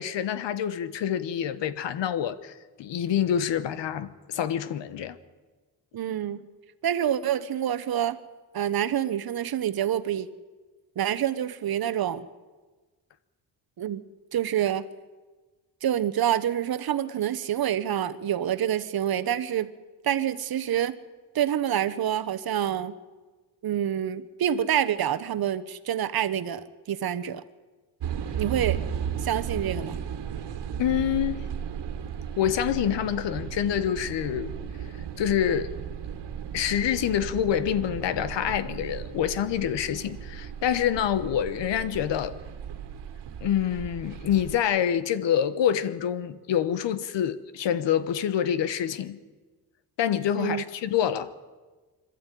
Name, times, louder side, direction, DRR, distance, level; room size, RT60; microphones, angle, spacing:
voice 1, 0.0-2.5 2.8-5.2 30.8-31.4 32.4-34.5 35.2-35.7 36.5-42.4 43.4-49.2 50.0-51.3, left 9 dB, 85° left, 1.2 m, -26 dB
voice 2, 5.9-6.5 6.8-8.2 8.5-10.3 11.0-12.3 13.8-14.0 14.3-14.9 15.8-19.7 20.0-21.0 21.3-23.0 23.6-26.6 26.9-27.4 28.4-28.8 29.2-30.0 50.4-50.6, right 10 dB, 55° right, 1.1 m, -27 dB
sound 1, 28.0-44.6, right 8 dB, 75° right, 1.8 m, -35 dB
25.5 x 13.0 x 9.2 m
cardioid pair, 130°, 42 cm